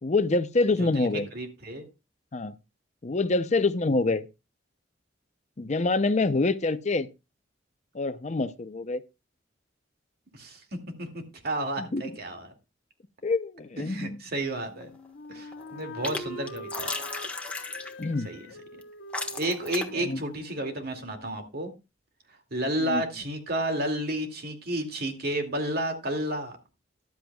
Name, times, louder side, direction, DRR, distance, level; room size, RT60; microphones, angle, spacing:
voice 1, 0.0-1.3 2.3-2.5 3.0-4.3 5.6-7.1 7.9-9.0 11.8-12.1 13.2-14.2 18.0-18.3 19.9-20.2 22.9-23.0, left 3 dB, 40° left, 0.6 m, -26 dB
voice 2, 0.8-1.9 10.3-10.6 11.0-12.5 13.9-14.9 15.3-16.9 18.2-18.8 19.4-21.7 22.5-26.5, right 1 dB, 55° right, 2.3 m, -31 dB
sound 1, 14.6-15.1 15.4-16.2 16.5-18.1 18.8-18.9 19.1-20.0, left 3 dB, 5° left, 1.4 m, -35 dB
Wind instrument woodwind instrument, 14.7-21.5, left 1 dB, 70° left, 0.9 m, -44 dB
14.0 x 12.0 x 2.3 m
head